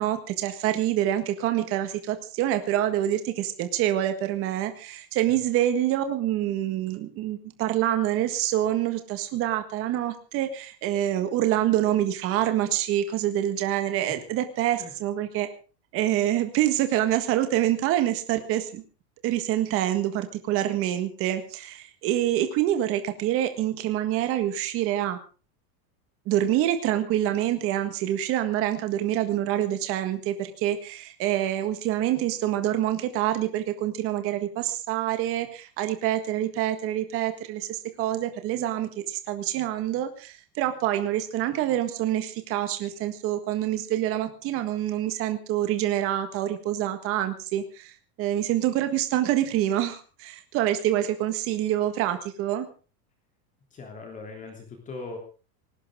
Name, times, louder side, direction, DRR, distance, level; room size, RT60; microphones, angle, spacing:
voice 1, 0.0-15.5 15.9-18.8 19.2-25.2 26.2-52.7, right 12 dB, 30° right, 8 dB, 1.6 m, -26 dB
voice 2, 53.7-55.2, left 3 dB, 15° left, 3 dB, 3.2 m, -40 dB
19.5 x 18.0 x 3.7 m, 0.36 s
supercardioid pair, 180°, 46 cm